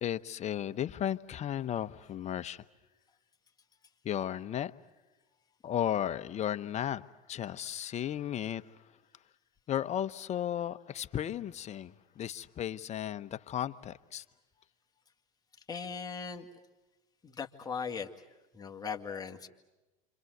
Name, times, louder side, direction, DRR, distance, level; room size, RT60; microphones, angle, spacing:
voice 1, 0.0-2.6 4.0-4.7 5.6-7.0 7.3-8.6 9.7-14.2, left 10 dB, 35° left, 1.0 m, -34 dB
voice 2, 15.7-16.5 17.2-18.1 18.5-19.5, left 6 dB, 20° left, 2.1 m, -38 dB
28.5 x 26.0 x 8.0 m
supercardioid pair, 95°, 19 cm